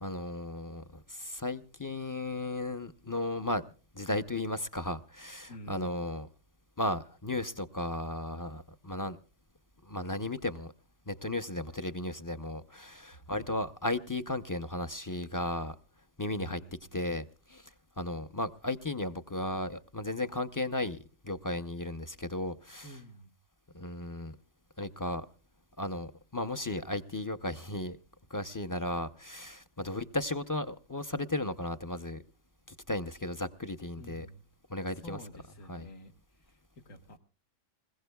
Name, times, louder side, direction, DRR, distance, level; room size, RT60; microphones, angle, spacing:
voice 1, 0.0-3.6 3.9-6.3 6.8-9.2 9.8-10.7 11.1-15.7 16.2-16.6 16.9-17.7 18.0-21.0 21.2-23.0 23.7-24.4 24.8-25.3 25.8-28.0 28.3-32.2 32.9-34.3 34.7-35.2 35.7-35.9, left 1 dB, 30° left, 0.4 m, -35 dB
voice 2, 5.5-6.0 13.3-13.6 16.4-16.8 22.8-23.4 34.0-34.4 34.8-36.1 36.4-37.2, equal, 85° left, 2.0 m, -49 dB
28.0 x 16.0 x 2.3 m
omnidirectional pair, 1.3 m